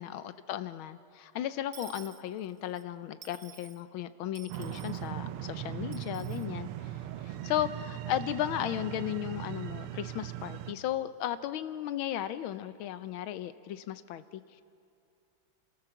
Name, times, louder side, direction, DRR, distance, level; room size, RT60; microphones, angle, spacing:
voice 1, 0.0-6.7 7.2-14.6, left 11 dB, 75° left, 13 dB, 1.5 m, -35 dB
Dishes pots and pans / Coin (dropping), 1.7-2.8 3.2-3.8 4.3-5.1 5.9-6.5, right 8 dB, 50° right, 0.8 m, -51 dB
sound 1, 4.5-10.7, right 12 dB, 80° right, 1.6 m, -39 dB
29.5 x 14.0 x 7.1 m, 2.6 s
omnidirectional pair, 2.4 m